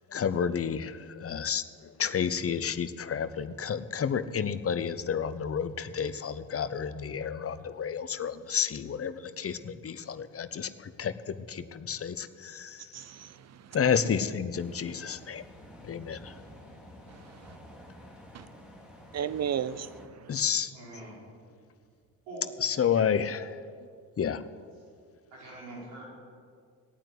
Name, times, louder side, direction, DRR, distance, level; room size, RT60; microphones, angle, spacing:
voice 1, 0.1-13.0 13.7-15.4 15.8-16.3 20.3-20.7 22.6-23.6 24.2-24.4, left 7 dB, 30° left, 13 dB, 0.9 m, -31 dB
voice 2, 12.9-13.8 17.1-17.6 18.3-18.5 19.1-20.4, right 8 dB, 35° right, 15 dB, 0.7 m, -35 dB
sound 1, 14.6-20.1, equal, ahead, 3.4 m, -50 dB
voice 3, 20.7-21.2 22.3-22.4 22.7-23.1 25.3-26.1, right 2 dB, 70° right, -5 dB, 5.3 m, -44 dB
18.0 x 9.1 x 7.9 m, 2.1 s
figure-of-eight pair, 50°, 49 cm